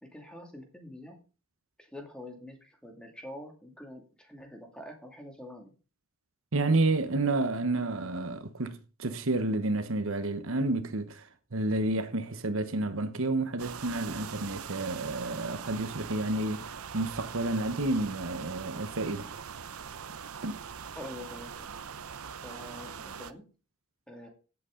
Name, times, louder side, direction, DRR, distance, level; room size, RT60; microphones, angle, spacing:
voice 1, 0.0-1.2 1.8-5.7 20.9-21.7 22.4-23.4 24.1-24.3, left 1 dB, 5° left, 2.4 m, -45 dB
voice 2, 6.5-19.3 20.4-20.6, right 2 dB, 65° right, 1.1 m, -30 dB
sound 1, 13.6-23.3, right 7 dB, 80° right, 0.7 m, -42 dB
15.0 x 8.4 x 3.8 m
head